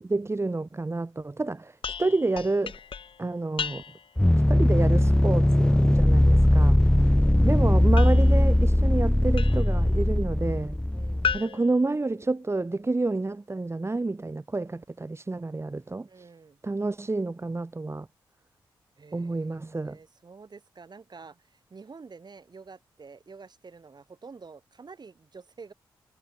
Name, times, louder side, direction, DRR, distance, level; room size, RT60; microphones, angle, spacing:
voice 1, 0.0-2.8 3.2-3.8 4.5-6.8 7.4-10.8 11.3-16.1 16.6-18.1 19.1-20.0, right 3 dB, 30° right, 2.1 m, -29 dB
sound 1, 1.8-4.2 8.0-9.8 11.2-12.7, left 7 dB, 65° left, 3.3 m, -36 dB
sound 2, 4.2-11.4, left 1 dB, 10° left, 1.9 m, -20 dB
voice 2, 6.9-7.4 10.9-11.3 16.1-16.6 19.0-25.7, right 4 dB, 50° right, 8.0 m, -48 dB
supercardioid pair, 45°, 9 cm